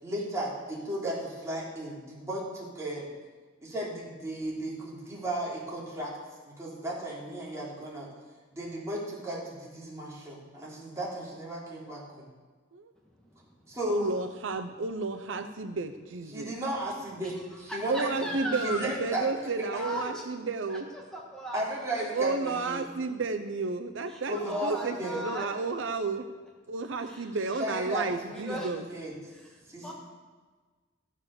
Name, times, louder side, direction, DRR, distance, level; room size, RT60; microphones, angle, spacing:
voice 1, 0.0-3.1 3.6-6.1 6.4-8.1 8.5-12.2 13.7-14.1 16.3-18.1 18.6-19.3 19.7-19.8 21.5-22.8 24.3-25.3 27.6-29.1 29.7-29.9, right 1 dB, 15° right, -6 dB, 3.5 m, -35 dB
voice 2, 13.9-16.5 17.9-20.9 22.1-26.3 26.7-28.8, right 3 dB, 75° right, 7 dB, 0.7 m, -32 dB
voice 3, 17.7-18.8 19.7-20.2 20.9-21.6 21.9-22.0 24.1-25.7 27.0-27.6 28.3-28.7 29.3-29.5 29.8-29.9, equal, 5° left, -3 dB, 1.7 m, -38 dB
14.5 x 7.4 x 6.7 m, 1.4 s
head